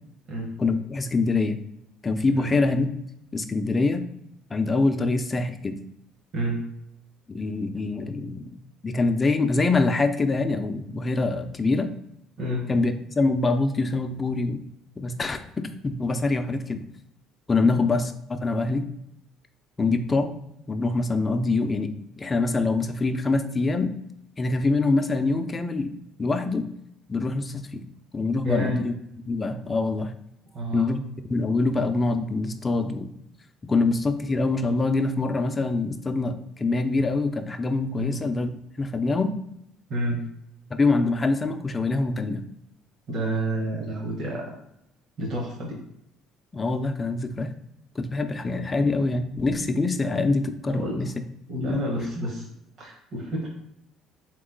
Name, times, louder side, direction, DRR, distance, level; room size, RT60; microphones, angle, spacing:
voice 1, 0.6-1.6 2.0-2.9 3.3-4.1 4.5-5.8 7.3-8.6 8.8-11.9 12.7-14.6 15.0-16.8 17.5-18.8 19.8-20.3 20.7-24.0 24.4-26.7 27.1-27.9 28.1-28.9 29.3-30.1 30.7-31.0 31.3-33.1 33.6-38.5 38.8-39.3 40.7-42.4 46.5-47.5 48.0-51.1 51.7-51.8, left 3 dB, 25° left, 8 dB, 0.4 m, -25 dB
voice 2, 12.4-12.7 17.6-17.8 28.4-28.8 30.5-30.9 38.0-38.2 39.9-40.2 43.1-44.5 45.2-45.8 50.7-51.0 51.5-52.4 52.8-53.5, right 1 dB, 50° right, -2 dB, 1.0 m, -29 dB
3.7 x 3.0 x 3.7 m, 0.78 s
supercardioid pair, 90°, 0 cm